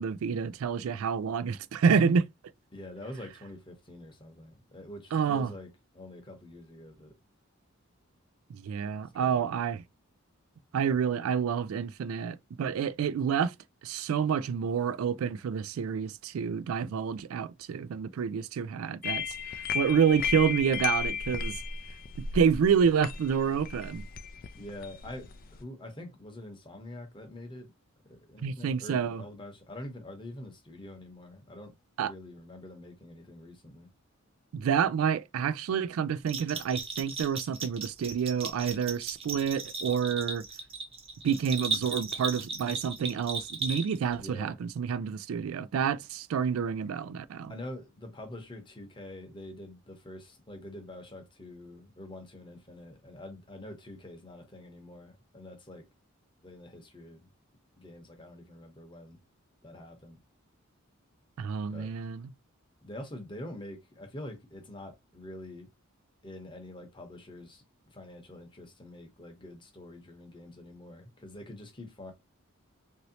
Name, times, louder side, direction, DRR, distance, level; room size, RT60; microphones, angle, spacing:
voice 1, 0.0-2.3 5.1-5.5 8.5-9.8 10.7-13.5 13.8-19.2 19.7-21.6 22.3-24.0 28.4-29.2 32.0-32.1 34.5-40.4 41.2-47.5 61.4-62.3, right 7 dB, 90° right, 0.3 m, -28 dB
voice 2, 2.7-7.1 9.2-9.5 24.5-27.7 28.0-31.7 32.0-33.9 44.2-44.6 47.5-55.9 56.4-57.3 57.8-59.2 59.6-60.2 61.7-61.9 62.8-65.7 66.2-72.1, left 1 dB, 25° left, 0.8 m, -45 dB
sound 1, 19.0-25.6, left 6 dB, 45° left, 0.3 m, -34 dB
Bell, 36.3-44.1, right 4 dB, 25° right, 0.8 m, -36 dB
3.0 x 2.7 x 2.7 m
head